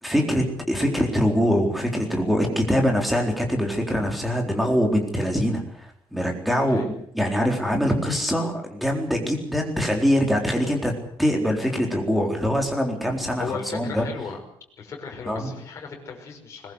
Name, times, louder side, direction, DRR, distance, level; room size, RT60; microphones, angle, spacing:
voice 1, 0.0-6.8 7.1-10.9 11.2-14.0 15.3-15.5, equal, ahead, 2 dB, 4.0 m, -23 dB
voice 2, 13.3-14.4 14.8-16.7, left 5 dB, 35° left, 0 dB, 5.7 m, -36 dB
21.5 x 21.0 x 8.2 m, 0.68 s
cardioid pair, 180°, 9 cm